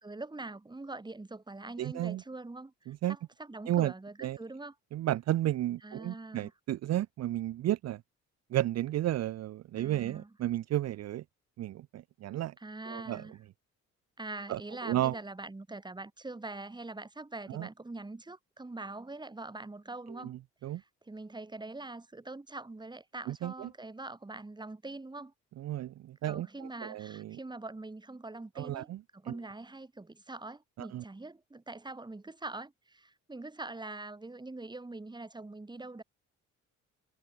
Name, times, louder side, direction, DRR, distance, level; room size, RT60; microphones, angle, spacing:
voice 1, 0.0-4.7 5.8-6.5 9.8-10.3 12.6-13.4 14.2-20.3 20.7-25.3 26.2-36.0, right 2 dB, 15° right, 2.2 m, -43 dB
voice 2, 1.8-2.2 2.9-3.2 3.7-3.9 4.2-4.4 4.9-8.0 8.5-11.2 11.6-12.5 12.8-13.2 14.5-15.2 17.5-17.7 20.2-20.8 23.3-23.7 25.6-27.4 28.6-29.0 29.3-29.4 30.8-31.0, right 13 dB, 60° right, 0.6 m, -33 dB
cardioid pair, 90°, 30 cm